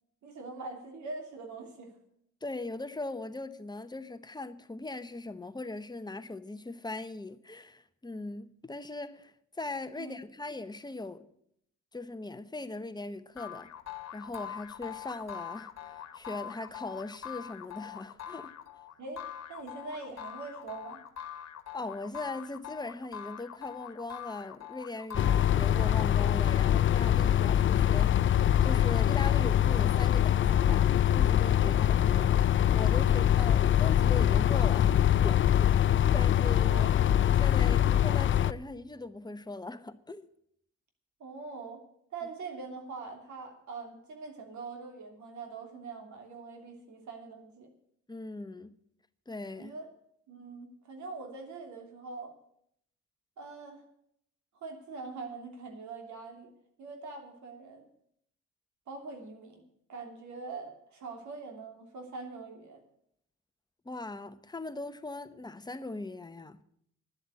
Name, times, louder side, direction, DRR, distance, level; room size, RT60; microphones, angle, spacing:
voice 1, 0.2-1.9 10.0-10.2 19.0-19.2 19.5-21.0 31.6-31.8 33.0-33.3 36.7-37.0 37.6-37.8 41.2-41.8 42.1-47.7 49.6-49.9 50.3-52.3 53.4-53.8 54.6-56.5 56.8-57.9 58.9-59.6 59.9-62.8, right 4 dB, 70° right, 3.0 m, -43 dB
voice 2, 2.4-11.3 11.9-13.7 14.1-18.6 21.7-32.3 32.7-35.7 36.1-36.9 37.2-40.3 48.1-48.8 49.3-49.7 63.8-66.6, left 2 dB, 15° left, 0.9 m, -40 dB
sound 1, 13.4-25.9, left 9 dB, 55° left, 1.5 m, -43 dB
sound 2, 25.1-38.5, left 10 dB, 40° left, 0.5 m, -24 dB
11.5 x 7.9 x 9.4 m
cardioid pair, 90°, 30 cm